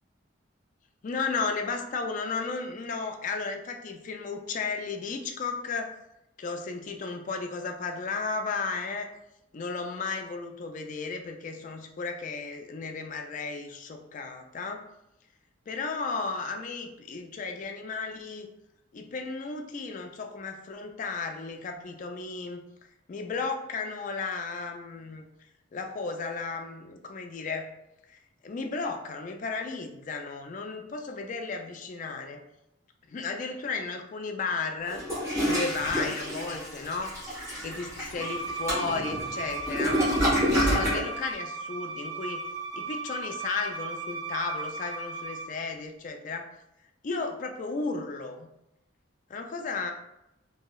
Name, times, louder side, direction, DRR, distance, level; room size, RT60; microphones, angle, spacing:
voice 1, 1.0-5.9 6.4-9.1 9.5-14.8 15.7-18.5 18.9-22.7 23.1-25.3 25.7-27.7 28.1-32.4 33.1-35.0 35.4-37.1 37.6-40.0 40.5-42.4 42.7-46.5 47.0-48.5 49.3-49.9, left 4 dB, 40° left, 5 dB, 0.3 m, -34 dB
Toilet flush, 34.9-41.1, equal, 15° right, 1.2 m, -28 dB
Bowed string instrument, 38.2-45.5, right 4 dB, 75° right, 1.0 m, -36 dB
2.9 x 2.7 x 2.3 m, 0.86 s
head